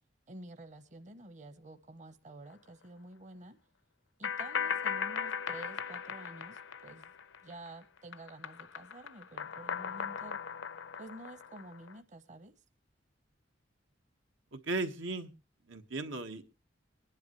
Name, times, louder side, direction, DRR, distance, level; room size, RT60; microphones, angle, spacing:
voice 1, 0.3-3.6 4.2-7.1 7.4-10.4 11.0-12.5, right 2 dB, 40° right, 1.0 m, -50 dB
sound 1, 4.2-7.7 8.0-11.9, left 7 dB, 80° left, 0.7 m, -38 dB
voice 2, 14.5-15.3 15.7-16.4, right 3 dB, 85° right, 1.5 m, -36 dB
23.5 x 10.5 x 3.1 m
head